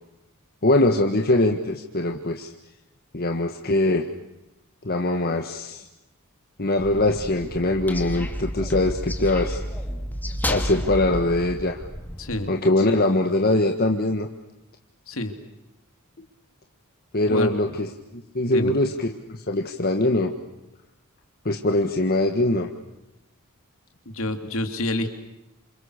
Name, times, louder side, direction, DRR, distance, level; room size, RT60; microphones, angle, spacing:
voice 1, 0.6-2.5 3.1-4.1 4.8-5.8 6.6-9.6 10.4-11.8 12.5-14.3 17.1-20.3 21.4-22.7, left 2 dB, 45° left, 3 dB, 1.6 m, -22 dB
sound 1, 6.8-12.4, equal, 10° left, 2.5 m, -31 dB
voice 2, 24.1-25.1, left 1 dB, 65° left, 6 dB, 3.3 m, -27 dB
29.5 x 28.0 x 6.7 m, 0.91 s
head